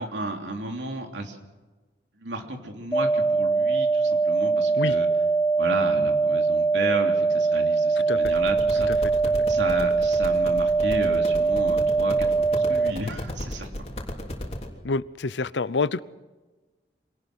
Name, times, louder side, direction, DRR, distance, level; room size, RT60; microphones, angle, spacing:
voice 1, 0.0-1.4 2.2-5.1 5.6-8.9 9.5-13.7, right 2 dB, 85° right, 3 dB, 3.3 m, -33 dB
sound 1, 2.9-12.9, right 4 dB, 10° left, 1.2 m, -22 dB
sound 2, 8.2-14.7, left 1 dB, 35° left, 3.3 m, -35 dB
voice 2, 14.8-16.0, left 3 dB, 85° left, 18 dB, 0.7 m, -26 dB
25.5 x 18.5 x 6.3 m, 1.2 s
head